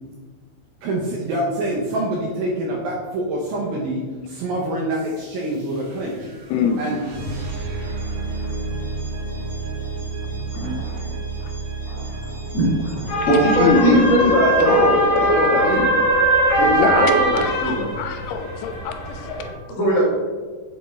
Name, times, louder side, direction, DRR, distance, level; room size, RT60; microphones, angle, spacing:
voice 1, 0.8-6.3 6.8-7.1, right 1 dB, 75° right, -3 dB, 2.3 m, -26 dB
sound 1, 5.0-15.8, right 3 dB, 55° right, 3.1 m, -32 dB
voice 2, 6.5-6.8 8.4-8.6 10.6-10.7 11.4-11.6 13.5-14.4 16.8-19.6, left 5 dB, 80° left, 7 dB, 2.4 m, -23 dB
voice 3, 10.5-11.0 11.8-16.1 16.6-17.8 19.8-20.0, right 1 dB, 35° left, -7 dB, 1.2 m, -21 dB
sound 2, 13.1-19.5, right 1 dB, 60° left, 1.4 m, -21 dB
7.5 x 3.6 x 4.1 m, 1.4 s
omnidirectional pair, 4.8 m